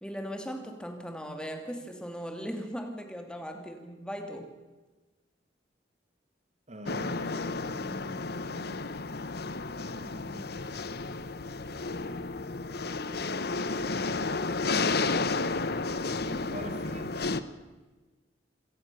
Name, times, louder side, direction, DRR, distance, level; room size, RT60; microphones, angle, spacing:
voice 1, 0.0-4.5, equal, 5° left, 5 dB, 2.5 m, -38 dB
voice 2, 6.7-9.0 9.4-10.5 16.2-17.5, right 1 dB, 40° right, 7 dB, 2.0 m, -46 dB
sound 1, 6.9-17.4, left 3 dB, 60° left, 1.0 m, -32 dB
26.0 x 17.0 x 6.9 m, 1.2 s
head